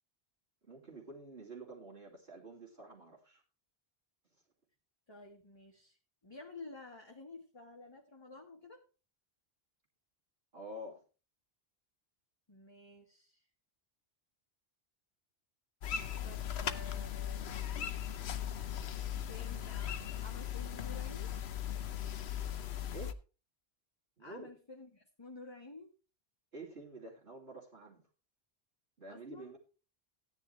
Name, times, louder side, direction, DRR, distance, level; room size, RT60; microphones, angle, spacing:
voice 1, 0.6-3.4 10.5-11.0 22.9-23.2 24.2-24.5 26.5-28.0 29.0-29.6, right 2 dB, 70° right, -6 dB, 3.0 m, -48 dB
voice 2, 5.1-6.0 6.2-8.8 12.5-13.4 16.2-17.5 19.2-21.3 24.2-25.9 29.1-29.6, left 3 dB, 25° left, 1 dB, 1.4 m, -51 dB
sound 1, 15.8-23.1, left 9 dB, 80° left, 1.1 m, -38 dB
14.5 x 9.9 x 3.2 m, 0.33 s
omnidirectional pair, 1.1 m